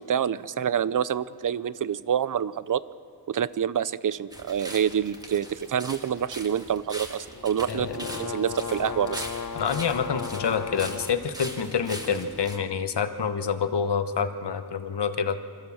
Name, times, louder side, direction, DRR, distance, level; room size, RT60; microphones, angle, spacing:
voice 1, 0.0-2.8 3.3-9.2, right 8 dB, 50° right, 18 dB, 0.6 m, -27 dB
sound 1, 4.3-12.6, equal, 10° right, 2.1 m, -41 dB
sound 2, 7.3-11.2, left 6 dB, 50° left, 0.8 m, -35 dB
voice 2, 7.7-8.1 9.5-15.4, left 6 dB, 75° left, 9 dB, 1.2 m, -27 dB
27.0 x 14.0 x 7.2 m, 2.5 s
wide cardioid pair, 85°, 41 cm